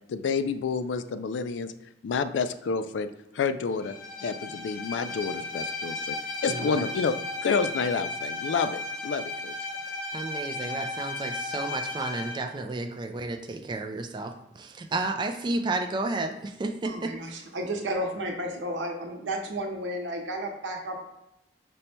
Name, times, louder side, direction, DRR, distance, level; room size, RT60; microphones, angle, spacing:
voice 1, 0.1-1.7 2.0-3.1 3.3-6.2 6.4-7.2 7.4-9.6, left 5 dB, 80° left, 11 dB, 0.3 m, -29 dB
Bowed string instrument, 3.8-12.4, left 2 dB, 50° left, 0.7 m, -35 dB
voice 2, 6.5-6.8 10.1-17.4, right 2 dB, 25° right, 6 dB, 0.3 m, -32 dB
voice 3, 16.8-21.0, right 1 dB, 80° right, 1 dB, 0.9 m, -32 dB
5.3 x 2.1 x 4.3 m, 0.92 s
head